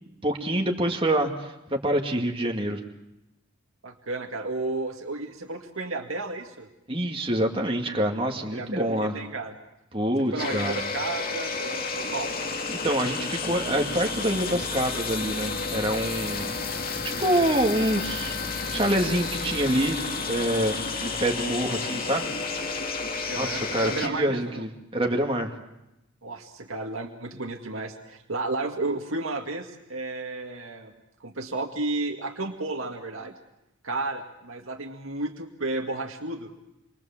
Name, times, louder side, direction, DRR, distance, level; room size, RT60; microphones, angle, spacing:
voice 1, 0.2-2.8 6.9-9.1 9.9-10.8 12.7-16.5 17.0-18.4 18.7-22.3 23.3-25.5, right 1 dB, 25° right, 1 dB, 2.2 m, -26 dB
voice 2, 3.8-6.7 8.5-9.5 10.3-12.3 23.3-24.6 26.2-30.9 31.2-33.3 33.8-36.5, right 2 dB, 80° right, 1 dB, 2.2 m, -32 dB
sound 1, 10.4-24.1, left 4 dB, 45° left, 2.1 m, -31 dB
28.5 x 23.5 x 7.4 m, 0.93 s
head